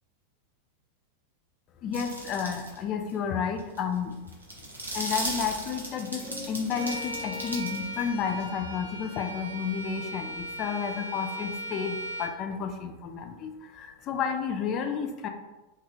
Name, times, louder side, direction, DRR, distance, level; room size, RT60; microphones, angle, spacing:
voice 1, 1.8-4.3 4.9-15.3, left 6 dB, 35° left, 5 dB, 0.3 m, -31 dB
sound 1, 1.9-2.8 3.1-3.2 3.6-8.4, right 1 dB, 80° right, 0.7 m, -37 dB
sound 2, 6.2-11.0, left 3 dB, 15° right, 0.7 m, -47 dB
Bowed string instrument, 6.7-12.4, right 1 dB, 80° left, 0.6 m, -38 dB
3.0 x 2.3 x 2.9 m, 1.1 s
figure-of-eight pair, 90°, 0 cm